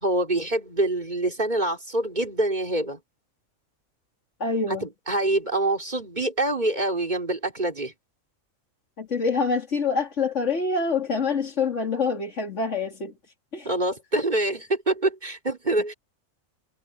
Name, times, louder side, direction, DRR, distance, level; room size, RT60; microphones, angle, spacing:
voice 1, 0.0-3.0 4.7-7.9 13.6-15.9, right 2 dB, 35° right, 3.9 m, -25 dB
voice 2, 4.4-4.9 9.0-13.1 13.5-13.7, left 4 dB, 60° left, 2.8 m, -26 dB
omnidirectional pair, 1.4 m